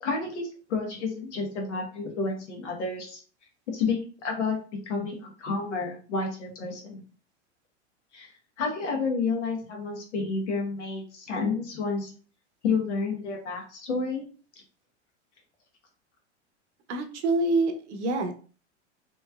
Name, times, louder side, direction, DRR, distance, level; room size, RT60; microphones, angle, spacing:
voice 1, 0.0-3.2 3.7-4.6 4.9-7.0 8.1-8.3 8.6-12.1 12.6-14.2, left 4 dB, 80° left, 0 dB, 1.3 m, -30 dB
voice 2, 16.9-18.3, right 2 dB, 70° right, 6 dB, 0.8 m, -26 dB
3.1 x 3.0 x 2.3 m, 0.39 s
hypercardioid pair, 105°, 35 cm